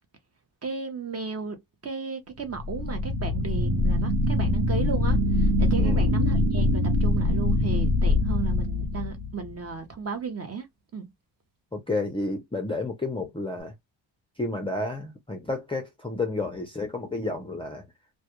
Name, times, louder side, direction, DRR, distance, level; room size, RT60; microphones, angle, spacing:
voice 1, 0.6-1.6 1.8-10.7 10.9-11.0, right 5 dB, 30° right, 0.7 m, -34 dB
sound 1, 2.5-9.5, left 2 dB, 70° right, 0.9 m, -23 dB
voice 2, 11.7-13.7 14.4-17.9, left 2 dB, 10° left, 0.4 m, -31 dB
2.2 x 2.2 x 2.9 m
cardioid pair, 125°, 48 cm